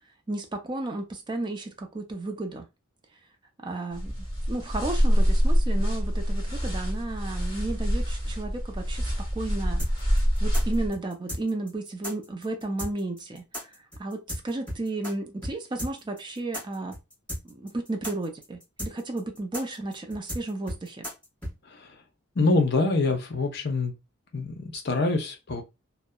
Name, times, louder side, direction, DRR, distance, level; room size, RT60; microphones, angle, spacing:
voice 1, 0.3-2.7 3.6-4.1 4.5-9.8 10.4-13.7 14.0-17.0 17.4-21.1, right 2 dB, 20° right, 0.4 m, -33 dB
sound 1, 3.9-10.9, equal, 25° left, 1.4 m, -25 dB
sound 2, 9.8-15.1 15.4-15.5 15.8-21.5, equal, 5° left, 1.2 m, -35 dB
voice 2, 21.7-22.0 22.4-23.9 24.3-25.6, left 3 dB, 55° left, 0.6 m, -25 dB
2.7 x 2.1 x 2.2 m
head